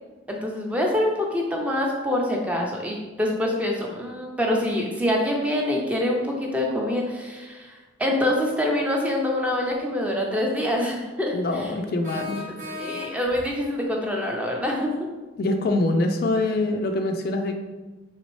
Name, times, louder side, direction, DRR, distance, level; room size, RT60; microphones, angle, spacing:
voice 1, 0.3-11.7 12.7-14.9, left 1 dB, 5° right, -1 dB, 0.5 m, -25 dB
voice 2, 11.3-12.8 15.4-17.6, left 2 dB, 50° left, 4 dB, 0.3 m, -25 dB
sound 1, 12.0-13.5, left 2 dB, 40° right, 0.9 m, -36 dB
4.1 x 3.3 x 3.1 m, 1.2 s
head